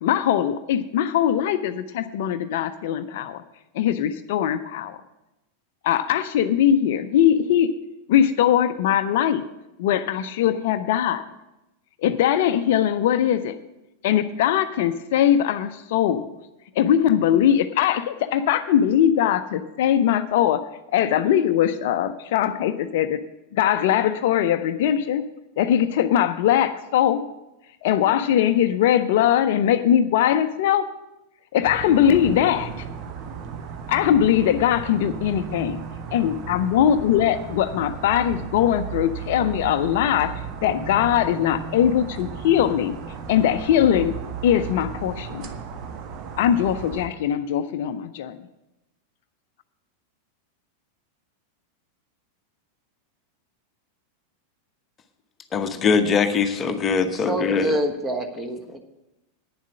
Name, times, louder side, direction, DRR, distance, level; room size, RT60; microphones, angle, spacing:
voice 1, 0.0-3.4 3.7-5.0 5.8-7.7 8.1-9.4 9.8-11.2 12.0-13.6 14.0-16.3 16.8-20.6 20.9-23.2 23.5-25.2 25.6-27.3 27.8-30.9 31.5-32.9 33.9-35.8 36.1-42.9 43.3-44.1 44.4-45.5 46.4-48.5, left 10 dB, 50° left, 11 dB, 0.5 m, -21 dB
sound 1, 31.6-47.1, right 6 dB, 35° right, 1.0 m, -35 dB
voice 2, 55.5-57.7, left 5 dB, 25° left, 8 dB, 0.9 m, -22 dB
voice 3, 57.3-58.8, equal, 15° right, 6 dB, 1.3 m, -26 dB
9.6 x 7.3 x 7.2 m, 0.95 s
figure-of-eight pair, 90°, 0 cm